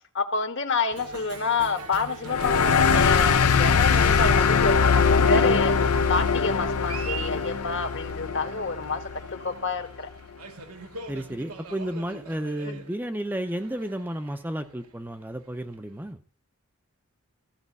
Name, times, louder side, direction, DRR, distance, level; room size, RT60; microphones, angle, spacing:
voice 1, 0.1-9.0 9.4-10.1 12.6-12.8, left 4 dB, 55° left, 1.4 m, -28 dB
Cheering, 0.9-16.1, right 4 dB, 85° right, 1.3 m, -43 dB
sound 1, 2.3-9.4, left 5 dB, 85° left, 0.7 m, -22 dB
voice 2, 11.1-16.2, right 1 dB, 10° right, 0.6 m, -32 dB
14.5 x 5.0 x 8.2 m
head